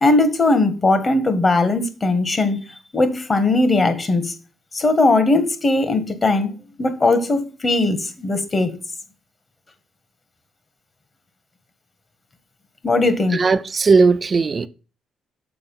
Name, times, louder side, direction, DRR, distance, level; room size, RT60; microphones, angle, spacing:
voice 1, 0.0-2.6 2.9-4.3 4.7-6.5 6.8-8.7 12.8-13.4, left 2 dB, 30° left, 1.5 m, -19 dB
voice 2, 13.3-14.7, right 4 dB, 35° right, 0.4 m, -17 dB
6.8 x 4.7 x 5.5 m
cardioid pair, 90°, 0 cm